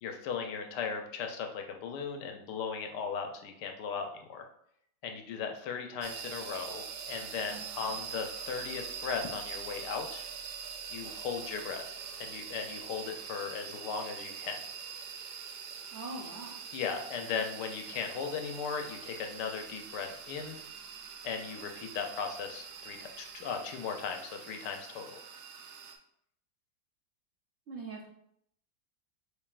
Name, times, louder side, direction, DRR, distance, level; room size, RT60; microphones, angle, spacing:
voice 1, 0.0-4.5 5.0-10.2 10.9-14.6 16.7-20.6 21.2-25.2, left 6 dB, 75° left, 4 dB, 1.2 m, -37 dB
sound 1, 6.0-25.9, right 6 dB, 75° right, 1.2 m, -44 dB
voice 2, 7.5-8.0 15.9-16.6 27.7-28.1, right 3 dB, 55° right, -3 dB, 0.8 m, -43 dB
6.7 x 2.7 x 2.4 m, 0.71 s
omnidirectional pair, 1.9 m